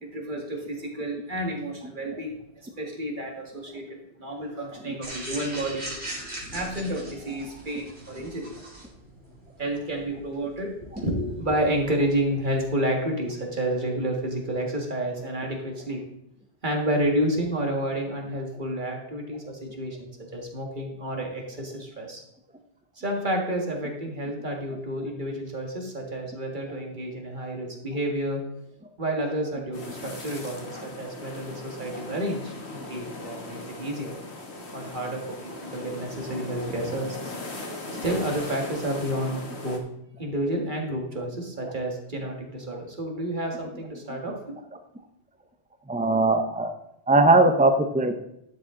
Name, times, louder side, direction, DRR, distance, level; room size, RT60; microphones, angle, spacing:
voice 1, 0.0-2.4 2.8-6.0 6.5-8.6 9.6-16.0 16.6-22.2 23.0-28.4 29.0-34.1 34.7-37.3 38.0-39.8 40.2-44.4, right 1 dB, 45° right, 1 dB, 1.9 m, -30 dB
sound 1, 5.0-12.7, right 1 dB, 75° right, 2.9 m, -40 dB
sound 2, 29.7-39.8, left 2 dB, 75° left, 1.7 m, -38 dB
voice 2, 45.9-46.7 47.1-48.2, right 2 dB, 10° right, 7 dB, 0.4 m, -20 dB
12.0 x 7.6 x 3.7 m, 0.82 s
omnidirectional pair, 1.1 m